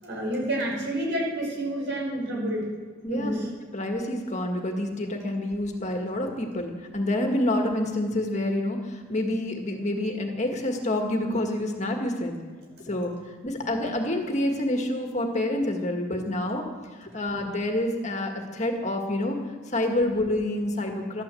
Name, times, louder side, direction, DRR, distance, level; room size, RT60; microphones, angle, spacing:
voice 1, 0.0-2.7 3.1-3.5, right 1 dB, 60° right, -1 dB, 5.7 m, -29 dB
voice 2, 3.0-3.4 3.7-12.4 12.9-13.1 13.4-16.6 17.0-19.4 19.7-21.2, left 1 dB, 35° left, 3 dB, 1.7 m, -27 dB
13.5 x 12.5 x 7.6 m, 1.5 s
head